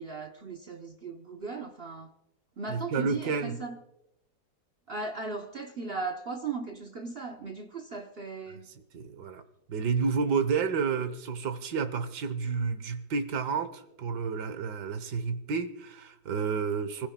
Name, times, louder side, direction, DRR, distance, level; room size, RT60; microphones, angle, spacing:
voice 1, 0.0-2.1 2.6-3.8 4.9-8.7, right 4 dB, 45° right, 0.8 m, -37 dB
voice 2, 2.7-3.6 8.9-9.4 9.7-17.1, right 5 dB, 70° right, 1.6 m, -30 dB
28.5 x 15.5 x 2.3 m
omnidirectional pair, 1.9 m